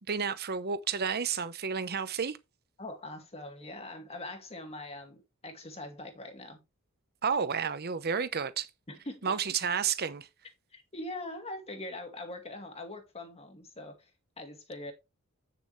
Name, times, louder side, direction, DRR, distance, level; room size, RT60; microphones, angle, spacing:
voice 1, 0.1-2.4 7.2-8.7 9.2-10.3, right 6 dB, 50° right, 0.8 m, -31 dB
voice 2, 2.8-6.6 8.9-9.4 10.7-14.1 14.4-14.9, left 1 dB, 30° left, 2.2 m, -42 dB
8.8 x 7.0 x 3.2 m
head